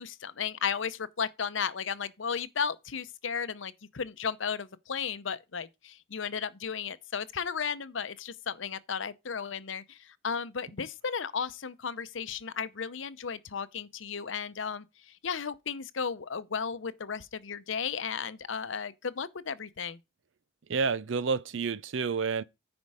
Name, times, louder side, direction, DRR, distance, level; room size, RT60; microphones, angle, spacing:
voice 1, 0.0-14.8 15.2-20.0, left 6 dB, 80° left, 0.7 m, -34 dB
voice 2, 20.7-22.4, right 5 dB, 75° right, 0.5 m, -29 dB
9.6 x 5.3 x 4.8 m
head